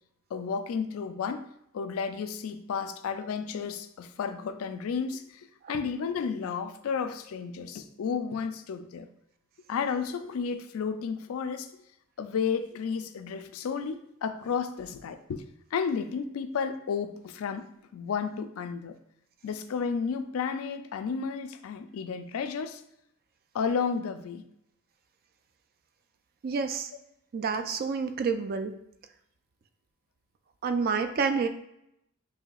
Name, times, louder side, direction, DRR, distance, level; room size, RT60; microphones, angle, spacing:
voice 1, 0.3-1.5 1.7-5.4 5.7-9.1 9.7-11.7 12.2-15.4 15.7-17.7 17.9-18.9 19.4-22.8 23.5-24.4, left 6 dB, 75° left, 9 dB, 0.3 m, -32 dB
voice 2, 26.4-26.9 27.3-28.7 30.6-31.5, right 5 dB, 45° right, 8 dB, 0.3 m, -28 dB
5.6 x 2.7 x 2.3 m, 0.79 s
head